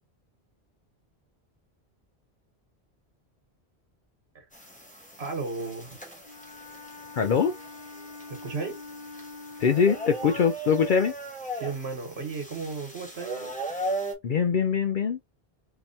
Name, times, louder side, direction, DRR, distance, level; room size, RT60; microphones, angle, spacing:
sound 1, 4.5-14.1, right 1 dB, 5° left, 1.2 m, -38 dB
voice 1, 5.2-5.9 8.4-8.8 11.5-13.5, right 4 dB, 75° right, 1.5 m, -34 dB
Wind instrument woodwind instrument, 6.2-10.6, left 3 dB, 35° left, 1.8 m, -45 dB
voice 2, 7.2-7.5 9.6-11.1 14.2-15.2, left 6 dB, 60° left, 0.6 m, -23 dB
3.7 x 2.9 x 2.6 m
omnidirectional pair, 1.1 m